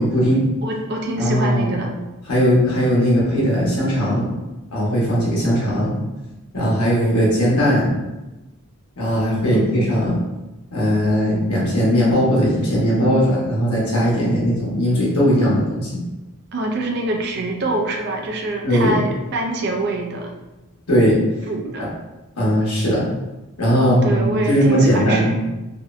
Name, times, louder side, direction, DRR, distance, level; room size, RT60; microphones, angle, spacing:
voice 1, 0.0-0.5 1.2-1.7 2.3-4.3 4.7-6.0 6.5-8.0 9.0-10.2 10.7-16.0 18.6-19.0 20.9-21.2 21.8-21.9 22.4-23.1 23.6-25.3, equal, 90° left, -6 dB, 1.0 m, -18 dB
voice 2, 0.6-1.9 9.5-9.9 16.5-20.3 21.5-21.9 23.7-25.4, right 2 dB, 50° right, 1 dB, 0.3 m, -25 dB
2.6 x 2.0 x 2.4 m, 1.1 s
head